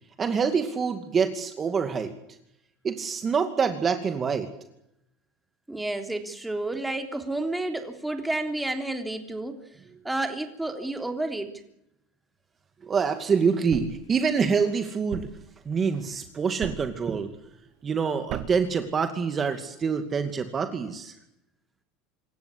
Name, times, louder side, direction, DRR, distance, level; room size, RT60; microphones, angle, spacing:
voice 1, 0.2-2.1 2.8-4.5 12.8-15.3 15.7-17.3 17.8-21.1, right 6 dB, 30° right, 7 dB, 2.4 m, -26 dB
voice 2, 5.7-9.6 10.0-11.6, right 2 dB, 5° right, 5 dB, 3.4 m, -30 dB
Thump thud, 13.7-14.1 15.1-15.5 16.6-17.0 18.3-18.7, right 12 dB, 60° right, 1.6 m, -36 dB
26.5 x 14.5 x 10.0 m, 0.83 s
supercardioid pair, 105°, 0 cm